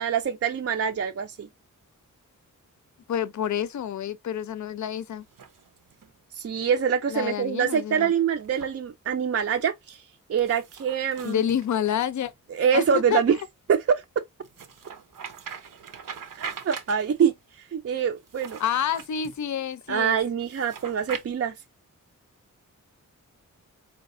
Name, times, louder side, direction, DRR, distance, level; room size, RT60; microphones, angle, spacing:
voice 1, 0.0-1.5 6.3-10.0 10.3-11.4 12.5-13.4 13.7-14.0 16.4-17.3 17.7-18.6 19.9-21.5, right 7 dB, 45° right, 0.5 m, -25 dB
voice 2, 3.1-5.2 7.1-8.1 11.2-12.3 12.7-12.8 13.1-13.2 18.6-20.2, left 9 dB, 60° left, 0.5 m, -28 dB
sound 1, 5.2-6.2 8.4-8.7 10.4-12.3 14.4-17.3 18.2-19.4 20.4-21.2, right 6 dB, 80° right, 0.7 m, -41 dB
4.1 x 3.2 x 2.5 m
wide cardioid pair, 80°, 32 cm